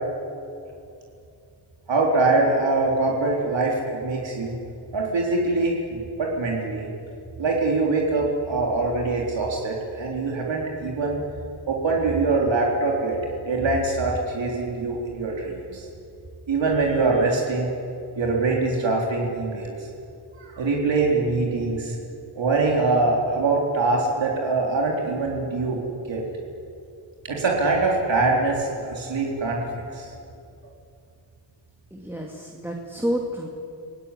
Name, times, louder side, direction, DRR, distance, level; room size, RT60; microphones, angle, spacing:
voice 1, 1.9-4.5 4.9-6.9 7.4-11.2 11.7-13.2 13.4-15.9 16.5-17.7 18.2-19.9 20.4-22.0 22.4-25.8 26.1-26.6 27.2-30.1, right 3 dB, 70° right, -2 dB, 3.7 m, -23 dB
voice 2, 31.9-33.5, equal, 5° right, -1 dB, 2.2 m, -29 dB
29.0 x 18.0 x 9.8 m, 2.6 s
wide cardioid pair, 145°, 46 cm